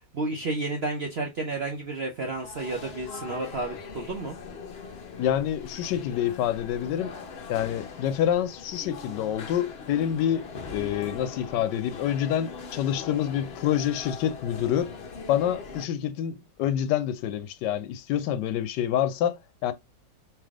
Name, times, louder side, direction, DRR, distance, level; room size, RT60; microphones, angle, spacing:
voice 1, 0.1-4.4, right 2 dB, 60° right, 0.6 m, -31 dB
sound 1, 2.2-15.8, left 4 dB, 50° left, 0.7 m, -41 dB
voice 2, 5.2-7.1 7.5-15.0 15.3-19.7, left 10 dB, 80° left, 1.2 m, -27 dB
3.4 x 3.1 x 3.5 m
omnidirectional pair, 1.9 m